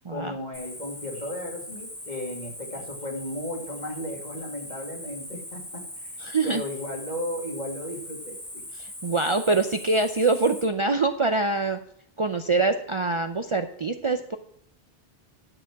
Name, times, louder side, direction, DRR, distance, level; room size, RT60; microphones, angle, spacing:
voice 1, 0.1-6.1 6.4-8.6, left 1 dB, 45° left, 0 dB, 2.6 m, -35 dB
Cricket, 0.5-10.6, left 1 dB, 85° left, 5.4 m, -40 dB
voice 2, 6.2-6.6 8.8-11.8 12.2-14.4, right 3 dB, 35° right, 6 dB, 0.6 m, -24 dB
11.0 x 7.0 x 6.0 m, 0.67 s
omnidirectional pair, 1.0 m